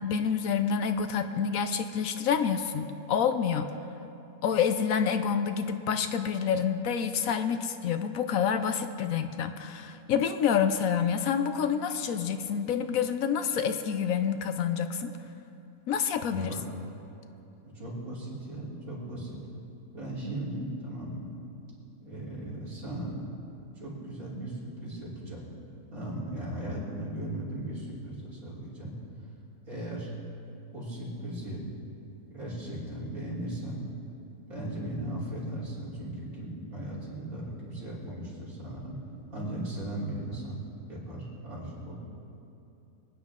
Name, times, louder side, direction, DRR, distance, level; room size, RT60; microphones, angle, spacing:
voice 1, 0.0-3.7 4.4-15.1 15.9-16.5, left 7 dB, 70° left, 9 dB, 1.0 m, -28 dB
voice 2, 17.6-19.4 19.9-21.3 22.0-23.2 23.8-25.4 25.9-29.0 29.7-30.1 30.7-31.6 32.3-33.8 34.5-39.0 39.3-40.6 40.9-42.0, right 1 dB, 65° right, -7 dB, 4.1 m, -37 dB
24.0 x 9.6 x 3.7 m, 2.8 s
omnidirectional pair, 1.6 m